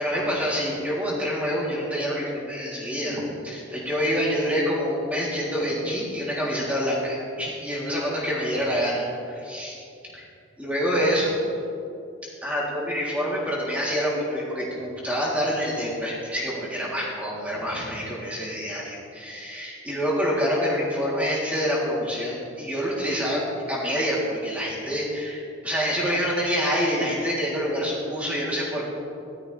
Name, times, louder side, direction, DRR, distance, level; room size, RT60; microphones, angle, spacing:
voice 1, 0.0-9.8 10.6-11.3 12.4-28.8, equal, 5° right, -7 dB, 3.4 m, -27 dB
18.5 x 13.5 x 3.5 m, 2.6 s
head